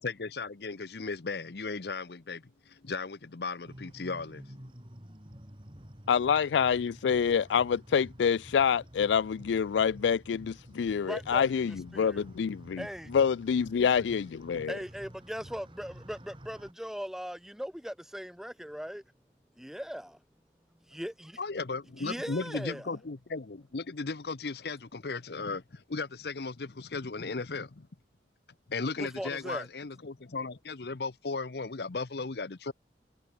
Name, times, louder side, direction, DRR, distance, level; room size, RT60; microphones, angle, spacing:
voice 1, 0.0-4.6 21.4-27.9 28.7-32.7, left 4 dB, 65° left, 0.8 m, -36 dB
sound 1, 3.7-16.7, equal, 30° right, 4.1 m, -50 dB
voice 2, 6.1-12.8 13.1-14.8, left 7 dB, 90° left, 0.4 m, -27 dB
voice 3, 11.0-12.2 12.8-13.1 14.7-19.0 19.6-20.2 20.9-21.4 22.0-22.9 29.0-29.7, equal, 5° right, 0.7 m, -39 dB
head